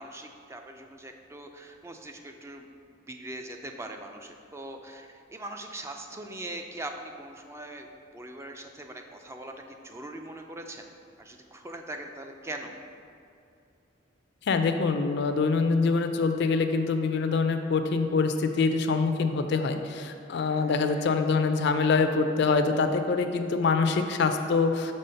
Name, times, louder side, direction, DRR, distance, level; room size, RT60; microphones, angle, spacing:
voice 1, 0.0-2.7 3.1-9.5 9.8-10.9 11.2-12.8 20.5-21.1, right 1 dB, 15° right, 4 dB, 0.3 m, -41 dB
voice 2, 14.5-24.9, left 4 dB, 65° left, 7 dB, 0.4 m, -25 dB
5.4 x 3.4 x 5.5 m, 2.5 s
head